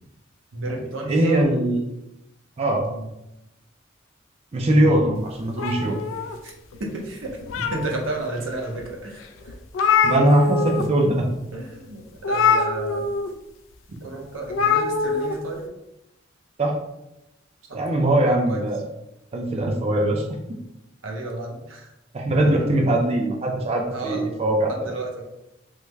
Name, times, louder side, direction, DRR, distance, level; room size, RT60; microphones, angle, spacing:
voice 1, 0.5-1.5 2.8-3.1 4.7-5.2 6.4-6.5 6.8-9.5 11.5-13.0 14.0-15.6 17.7-17.8 18.2-18.6 21.0-21.9 23.9-24.4 24.7-25.2, right 2 dB, 80° right, 0 dB, 0.7 m, -32 dB
voice 2, 1.1-1.8 2.6-2.8 4.5-6.0 10.0-11.3 16.6-16.8 17.7-18.8 19.3-20.4 22.1-24.9, right 1 dB, 30° right, 0 dB, 0.3 m, -21 dB
sound 1, 5.6-6.8 7.2-8.1 8.7-8.8 9.2-9.3 9.5-10.9 11.1-11.3 12.2-13.3 14.5-15.3, left 5 dB, 75° left, 0.4 m, -23 dB
3.3 x 2.1 x 3.3 m, 0.90 s
head